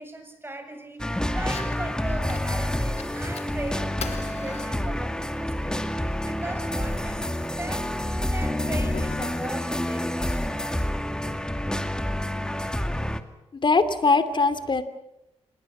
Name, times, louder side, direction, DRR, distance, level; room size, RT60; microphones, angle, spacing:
voice 1, 0.0-5.9 6.2-7.3 7.6-7.9 8.3-10.6, right 1 dB, 20° right, 6 dB, 7.6 m, -38 dB
sound 1, 1.0-13.2, left 1 dB, 5° left, 2.2 m, -28 dB
Fire, 1.3-10.3, left 6 dB, 70° left, 3.2 m, -44 dB
voice 2, 13.6-14.8, left 4 dB, 45° left, 11 dB, 2.8 m, -21 dB
27.5 x 21.0 x 7.5 m, 0.89 s
cardioid pair, 70°, 11 cm